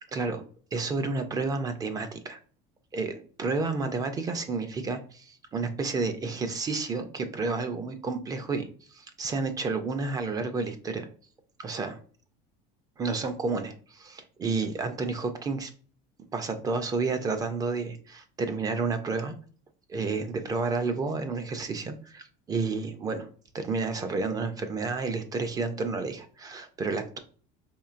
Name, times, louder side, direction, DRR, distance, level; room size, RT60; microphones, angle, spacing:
voice 1, 0.1-0.4 0.7-2.4 2.9-11.1 11.6-12.0 13.0-15.7 16.3-19.4 19.9-23.3 23.5-27.2, right 4 dB, 20° right, 8 dB, 0.3 m, -31 dB
4.3 x 3.0 x 2.4 m, 0.44 s
cardioid pair, 155°, 20 cm